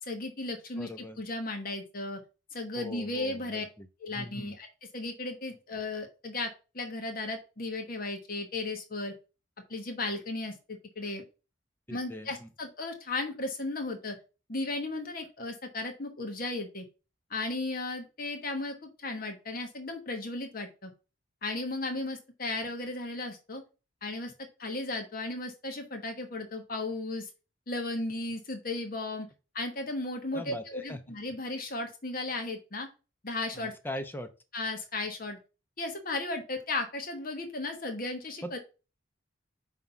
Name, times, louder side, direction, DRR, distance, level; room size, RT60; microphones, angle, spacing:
voice 1, 0.0-2.2 2.5-3.6 4.0-4.7 4.9-9.1 9.7-11.2 11.9-14.2 14.5-16.8 17.3-20.9 21.4-23.6 24.0-24.3 24.6-27.3 27.7-29.3 29.5-32.9 33.2-33.7 34.5-35.4 35.8-38.6, left 2 dB, 45° left, 4 dB, 1.3 m, -35 dB
voice 2, 0.8-1.2 2.7-3.9 4.1-4.5 11.9-12.5 30.3-31.0 33.5-34.3 38.4-38.6, left 1 dB, 10° left, 7 dB, 0.7 m, -41 dB
5.6 x 3.6 x 5.8 m, 0.31 s
head